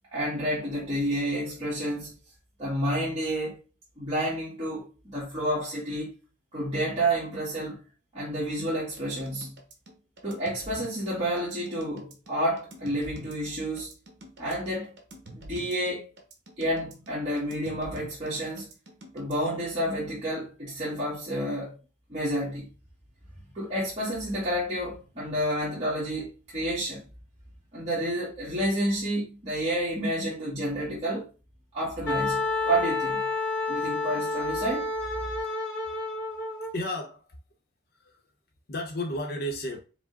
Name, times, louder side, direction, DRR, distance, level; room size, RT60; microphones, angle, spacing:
voice 1, 0.1-2.2 2.6-3.6 4.0-6.1 6.5-7.8 8.1-9.5 10.2-13.9 14.4-14.9 15.3-16.1 16.6-18.7 19.1-21.8 22.1-22.7 23.5-27.0 27.7-31.3 31.7-33.3 33.7-34.9, right 1 dB, 35° right, 1.5 m, -30 dB
sound 1, 9.0-19.8, right 1 dB, 65° right, 1.0 m, -47 dB
Wind instrument woodwind instrument, 32.1-36.7, left 3 dB, 90° left, 1.3 m, -29 dB
voice 2, 36.6-37.3 37.9-38.2 38.7-39.8, left 1 dB, 60° left, 0.9 m, -33 dB
5.0 x 2.2 x 3.8 m
head